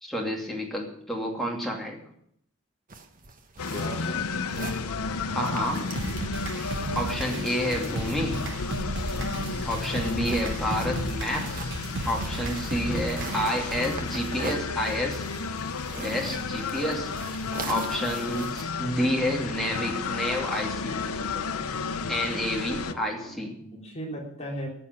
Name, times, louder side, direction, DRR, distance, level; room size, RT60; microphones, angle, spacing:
voice 1, 0.0-2.0 5.3-5.9 6.7-8.5 9.6-11.5 12.0-15.2 16.0-17.2 17.6-21.4 22.1-23.6, equal, ahead, -2 dB, 2.6 m, -30 dB
sound 1, 2.9-18.6, right 3 dB, 40° right, 1.3 m, -43 dB
sound 2, 3.6-22.9, left 4 dB, 85° left, 0.9 m, -32 dB
voice 2, 3.7-4.2 9.3-9.7 22.8-24.7, equal, 30° left, -3 dB, 3.6 m, -38 dB
sound 3, 6.0-13.9, right 2 dB, 55° right, 1.0 m, -35 dB
14.5 x 7.2 x 9.8 m, 0.71 s
head